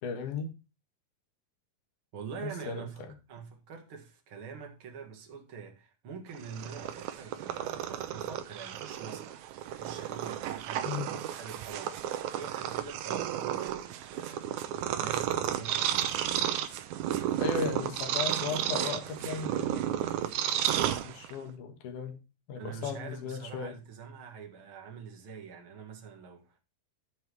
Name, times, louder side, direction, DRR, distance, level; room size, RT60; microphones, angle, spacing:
voice 1, 0.0-0.5 2.4-3.2 10.8-11.2 17.4-19.8 21.0-22.2 22.5-23.8, left 5 dB, 65° left, 2.9 m, -36 dB
voice 2, 2.1-3.0 3.3-16.6 22.6-26.6, right 6 dB, 45° right, 2.3 m, -45 dB
Purr, 6.3-21.5, right 11 dB, 75° right, 1.9 m, -32 dB
12.0 x 4.7 x 4.6 m
omnidirectional pair, 4.0 m